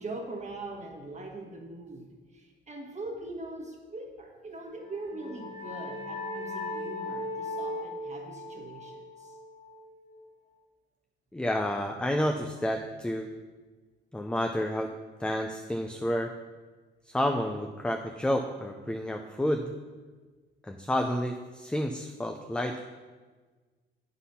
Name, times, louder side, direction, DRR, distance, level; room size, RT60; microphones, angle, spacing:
voice 1, 0.0-9.4, right 2 dB, 35° right, 2 dB, 1.4 m, -41 dB
sound 1, 4.8-10.2, left 2 dB, 35° left, 1.5 m, -38 dB
voice 2, 11.3-13.3 14.1-14.9 15.2-16.3 17.1-19.7 20.6-22.8, left 1 dB, 5° left, 4 dB, 0.4 m, -30 dB
8.1 x 4.0 x 5.6 m, 1.4 s
cardioid pair, 90°, 20 cm